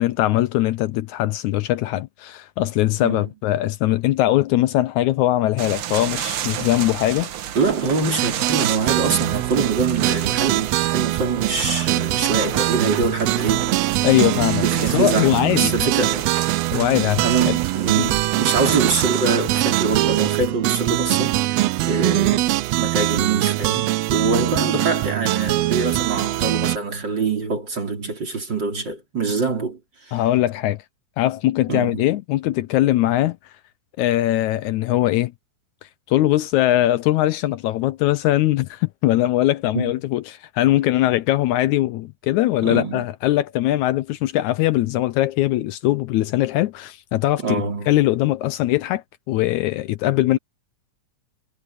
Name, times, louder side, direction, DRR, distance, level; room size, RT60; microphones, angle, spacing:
voice 1, 0.0-7.3 14.0-15.9 16.7-17.6 18.0-18.1 30.1-30.8 31.2-33.4 34.0-35.3 36.1-50.4, left 15 dB, 80° left, 2.0 m, -21 dB
sound 1, 5.6-20.4, right 10 dB, 65° right, 1.4 m, -31 dB
voice 2, 7.5-13.7 14.6-16.3 17.2-22.5 22.8-30.2 31.7-32.1 39.7-39.9 42.6-43.0 47.4-47.9, right 4 dB, 35° right, 4.5 m, -24 dB
sound 2, 8.2-26.8, right 17 dB, 85° right, 1.4 m, -22 dB
omnidirectional pair, 3.6 m